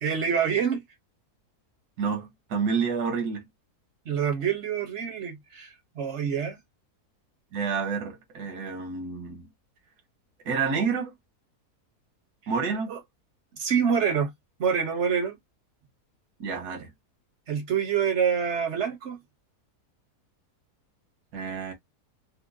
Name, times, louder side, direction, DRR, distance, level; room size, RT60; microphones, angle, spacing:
voice 1, 0.0-0.8 4.1-6.6 12.9-13.0 13.5-14.3 14.6-15.4 17.5-19.2, right 7 dB, 55° right, 1.0 m, -26 dB
voice 2, 2.0-3.5 7.5-9.5 10.5-11.1 12.5-12.9 16.4-16.9 21.3-21.7, right 5 dB, 80° right, 1.7 m, -29 dB
4.4 x 2.1 x 2.5 m
omnidirectional pair, 1.7 m